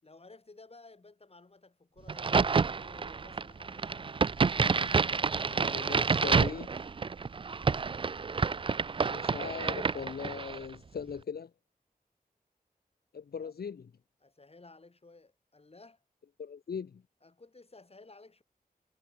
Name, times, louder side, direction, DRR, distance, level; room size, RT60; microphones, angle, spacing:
voice 1, 0.0-4.1 13.4-13.5 14.2-16.0 17.2-18.4, left 3 dB, 40° left, 6.2 m, -55 dB
Crack, 2.1-10.6, right 5 dB, 35° right, 0.4 m, -29 dB
voice 2, 5.4-6.7 9.1-11.5 13.1-13.9 16.4-17.0, left 6 dB, 85° left, 1.2 m, -39 dB
wide cardioid pair, 85°, 16 cm